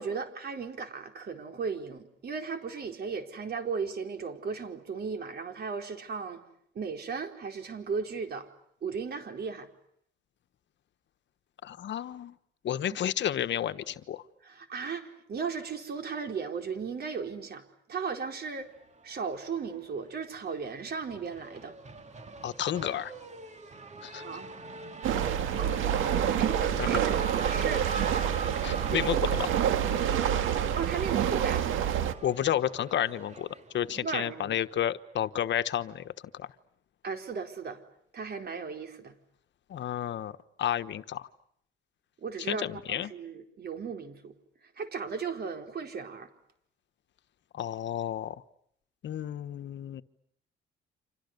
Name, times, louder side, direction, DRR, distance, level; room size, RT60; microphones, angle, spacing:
voice 1, 0.0-6.4 6.7-8.5 8.8-9.7 12.9-13.0 14.4-18.7 19.0-21.7 24.2-24.5 25.6-25.9 26.4-27.9 28.8-29.0 30.8-31.6 33.9-34.6 37.0-37.8 38.1-39.1 42.2-44.3 44.8-46.3, right 5 dB, 55° right, 5 dB, 4.4 m, -36 dB
voice 2, 11.6-12.3 12.6-14.2 22.4-23.1 24.0-24.2 26.8-27.0 28.6-29.5 32.2-33.5 33.7-36.5 39.7-40.3 40.6-41.3 42.5-43.1 47.5-48.4 49.0-50.0, left 10 dB, 65° left, 11 dB, 1.2 m, -31 dB
Race car auto racing / Accelerating revving vroom, 19.0-20.0 20.3-34.0, right 2 dB, 35° right, 2.6 m, -42 dB
sound 1, 25.0-32.1, right 9 dB, 85° right, 1.9 m, -27 dB
30.0 x 26.5 x 6.8 m, 0.70 s
cardioid pair, 90°, 20 cm